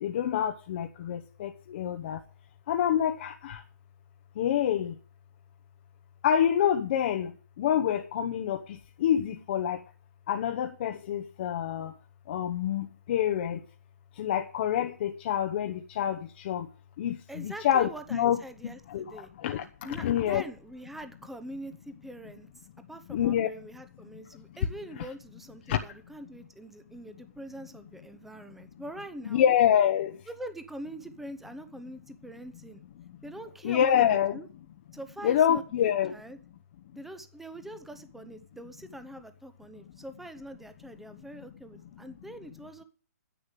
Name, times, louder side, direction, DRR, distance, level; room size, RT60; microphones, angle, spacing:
voice 1, 0.0-2.2 2.7-3.6 4.4-4.9 6.2-7.3 7.6-8.6 9.0-9.8 10.3-11.9 12.3-13.6 14.2-16.2 16.5-16.6 17.0-18.4 18.9-19.0 19.4-19.6 20.0-20.4 23.1-23.5 25.7-25.8 29.3-30.1 33.6-34.4 35.2-36.1, left 10 dB, 40° left, 0.9 m, -26 dB
voice 2, 17.3-19.3 19.8-22.5 22.9-29.4 30.3-32.8 33.2-34.5 34.9-36.4 36.9-42.8, right 1 dB, 5° right, 0.9 m, -44 dB
10.0 x 7.9 x 8.1 m
hypercardioid pair, 155°, 9 cm